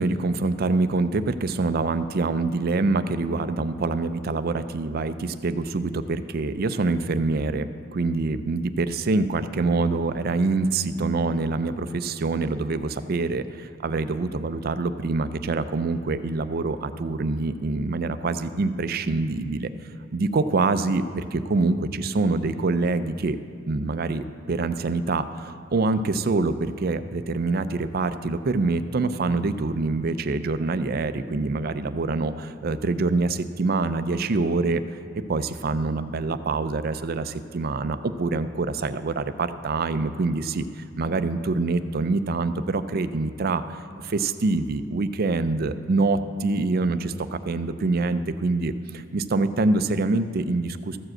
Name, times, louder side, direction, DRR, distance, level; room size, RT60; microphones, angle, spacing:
voice 1, 0.0-19.7 20.1-23.4 23.7-34.8 35.3-51.0, right 3 dB, 50° right, 11 dB, 0.4 m, -25 dB
14.0 x 4.9 x 7.6 m, 2.3 s
head